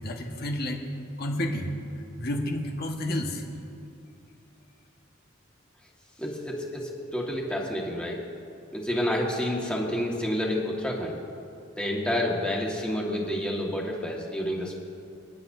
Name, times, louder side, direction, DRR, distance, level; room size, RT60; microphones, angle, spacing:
voice 1, 0.0-0.8 1.2-1.7 2.2-3.4, left 1 dB, 50° left, 1 dB, 1.5 m, -30 dB
voice 2, 6.2-8.2 8.7-11.2 11.8-14.8, left 1 dB, 5° left, -2 dB, 1.7 m, -29 dB
28.0 x 10.0 x 2.7 m, 2.6 s
head